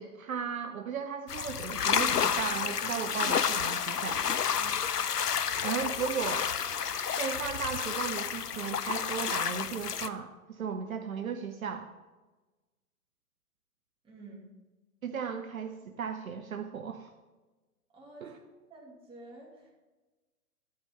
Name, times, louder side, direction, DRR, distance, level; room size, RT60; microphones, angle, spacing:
voice 1, 0.0-4.2 5.6-6.5 7.2-11.9 15.0-17.1 18.2-18.4, right 6 dB, 60° right, 8 dB, 0.8 m, -36 dB
sound 1, 1.3-10.1, left 7 dB, 85° left, 0.6 m, -30 dB
Trumpet, 1.8-9.7, left 5 dB, 30° left, 1.2 m, -49 dB
voice 2, 14.0-14.5 17.9-18.4 18.7-19.7, right 2 dB, 10° right, -4 dB, 2.6 m, -50 dB
12.0 x 8.7 x 3.7 m, 1.2 s
figure-of-eight pair, 115°, 46 cm